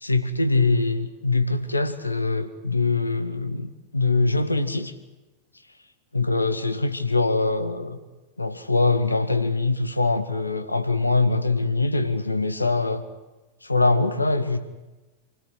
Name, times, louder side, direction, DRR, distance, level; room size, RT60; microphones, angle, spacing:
voice 1, 0.0-4.9 6.1-8.0 8.4-13.0 13.6-14.6, left 3 dB, 80° left, 9 dB, 1.9 m, -23 dB
28.0 x 16.5 x 9.7 m, 1.1 s
figure-of-eight pair, 90°, 0 cm